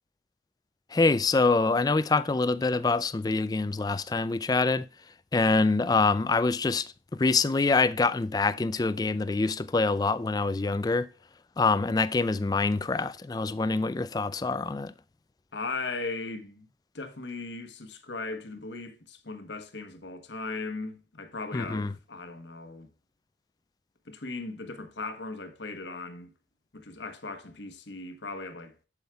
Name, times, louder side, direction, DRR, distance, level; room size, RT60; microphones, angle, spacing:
voice 1, 0.9-4.9 5.3-11.1 11.6-14.9 21.5-21.9, left 3 dB, 20° left, 0.3 m, -25 dB
voice 2, 15.5-16.7 16.9-22.9 24.1-26.3 26.7-28.7, left 3 dB, 70° left, 1.2 m, -38 dB
7.8 x 7.3 x 2.3 m
head